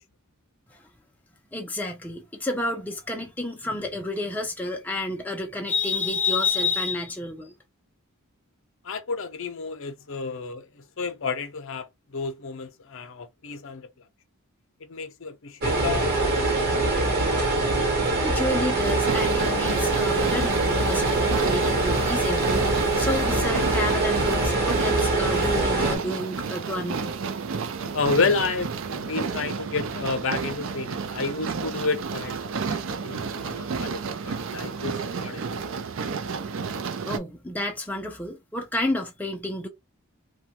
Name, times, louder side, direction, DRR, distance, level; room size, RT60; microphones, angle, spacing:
voice 1, 1.5-7.5 18.2-27.2 37.1-39.7, left 2 dB, 10° left, 0.5 m, -30 dB
voice 2, 8.8-11.9 12.1-13.9 14.9-16.6 27.9-35.7, left 4 dB, 60° left, 0.6 m, -30 dB
sound 1, 15.6-26.0, right 2 dB, 45° right, 1.0 m, -23 dB
sound 2, 18.8-37.2, right 5 dB, 60° right, 0.4 m, -31 dB
3.0 x 2.2 x 2.9 m
head